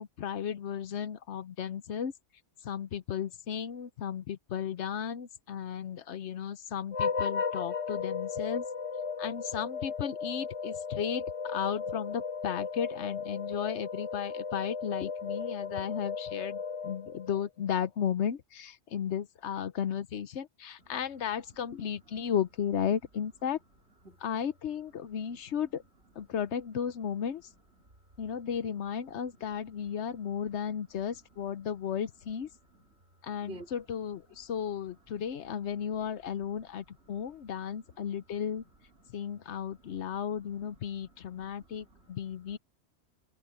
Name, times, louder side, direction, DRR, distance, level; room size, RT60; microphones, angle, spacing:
voice 1, 0.0-2.1 2.6-8.6 9.2-23.6 24.2-25.8 26.2-27.4 28.2-32.5 33.2-38.6 39.1-42.6, left 8 dB, 80° left, 1.1 m, -34 dB
sound 1, 6.9-17.5, left 5 dB, 35° left, 0.8 m, -35 dB
voice 2, 21.5-22.1 24.0-24.2 25.0-25.1 25.5-25.6 27.5-27.9 28.9-29.0 29.4-29.5 29.9-30.3 30.6-31.2 32.7-33.0 33.4-33.7 34.3-34.4 35.5-35.6 35.8-38.3 39.0-39.1 39.5-40.3 40.9-42.6, right 2 dB, 65° right, 3.9 m, -56 dB
omnidirectional pair, 1.2 m